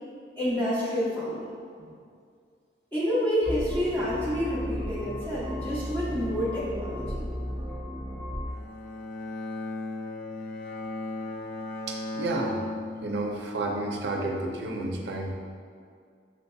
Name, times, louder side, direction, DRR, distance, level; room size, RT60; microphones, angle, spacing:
voice 1, 0.4-1.5 2.9-7.3, equal, 10° left, -11 dB, 0.8 m, -28 dB
sound 1, 3.4-8.4, equal, 80° left, 1.2 m, -35 dB
Bowed string instrument, 8.5-13.7, left 2 dB, 45° left, 0.4 m, -36 dB
voice 2, 11.9-12.6 13.0-15.3, right 2 dB, 70° right, 1 dB, 0.5 m, -31 dB
6.2 x 2.7 x 2.2 m, 2.2 s
head